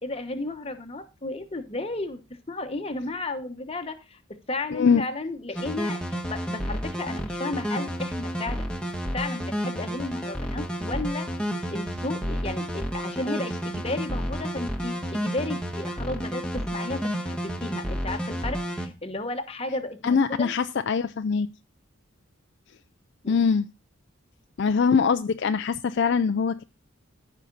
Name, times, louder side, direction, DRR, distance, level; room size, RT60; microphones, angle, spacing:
voice 1, 0.0-6.0 6.3-8.7 9.1-11.3 11.7-20.5 23.2-23.5, left 2 dB, 25° left, 1.0 m, -33 dB
voice 2, 4.7-5.0 20.0-21.5 23.3-23.7 24.6-26.6, left 5 dB, 55° left, 0.4 m, -22 dB
sound 1, 5.6-18.9, equal, 5° left, 1.1 m, -31 dB
14.5 x 5.6 x 3.9 m
head